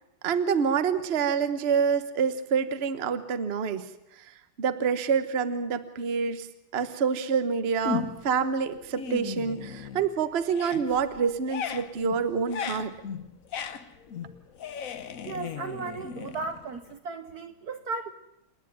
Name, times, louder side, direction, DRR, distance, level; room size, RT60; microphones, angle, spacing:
voice 1, 0.2-3.8 4.2-4.3 4.6-6.5 6.7-12.9, right 6 dB, 40° right, 11 dB, 1.0 m, -27 dB
sound 1, 7.8-8.4 8.8-10.1 10.4-16.9, left 6 dB, 50° left, 1.1 m, -36 dB
voice 2, 15.2-18.1, right 4 dB, 55° right, 9 dB, 1.2 m, -35 dB
28.0 x 10.0 x 9.4 m, 0.84 s
omnidirectional pair, 2.3 m